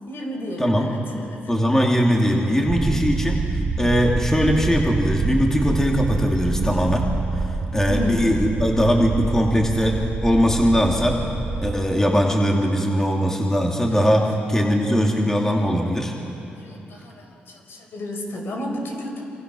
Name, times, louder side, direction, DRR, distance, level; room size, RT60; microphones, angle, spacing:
voice 1, 0.1-1.4 7.9-8.5 13.9-14.1 16.5-19.2, equal, 65° left, 2 dB, 4.9 m, -32 dB
voice 2, 1.5-7.1 7.3-7.4 7.7-11.2 11.6-16.1, equal, 10° left, 0 dB, 2.7 m, -20 dB
sound 1, 2.7-11.7, right 3 dB, 50° right, 1.8 m, -27 dB
27.0 x 26.0 x 6.3 m, 2.9 s
cardioid pair, 95°, 4 cm